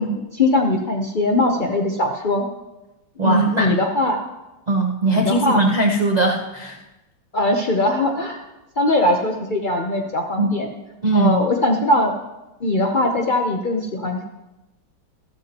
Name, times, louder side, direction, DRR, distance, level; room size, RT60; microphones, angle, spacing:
voice 1, 0.0-2.5 3.2-4.2 5.2-5.6 7.3-8.4 8.8-10.7 11.1-12.1 12.6-14.2, left 1 dB, 70° left, 2 dB, 0.4 m, -20 dB
voice 2, 3.2-3.7 4.7-6.8 10.4-10.5 11.0-11.4, right 2 dB, 75° right, 0 dB, 0.4 m, -19 dB
14.5 x 12.5 x 2.9 m, 1.0 s
omnidirectional pair, 2.2 m